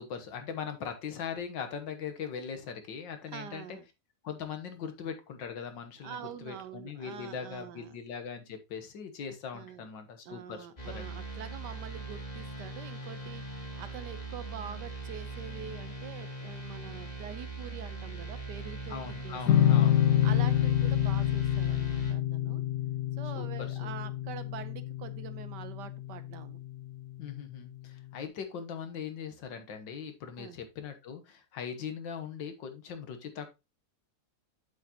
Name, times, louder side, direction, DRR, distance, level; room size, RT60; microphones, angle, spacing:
voice 1, 0.0-3.8 4.2-11.1 18.9-20.0 20.4-20.7 23.3-23.9 27.2-33.5, left 7 dB, 85° left, 1.9 m, -40 dB
voice 2, 3.3-3.8 6.0-7.9 9.5-9.9 10.2-19.7 20.2-22.6 23.2-26.6 30.4-30.6, right 9 dB, 75° right, 1.4 m, -45 dB
sound 1, 10.8-22.1, right 2 dB, 20° left, 2.4 m, -40 dB
sound 2, 19.5-26.7, left 11 dB, 70° left, 1.2 m, -27 dB
8.4 x 7.5 x 2.9 m
omnidirectional pair, 1.9 m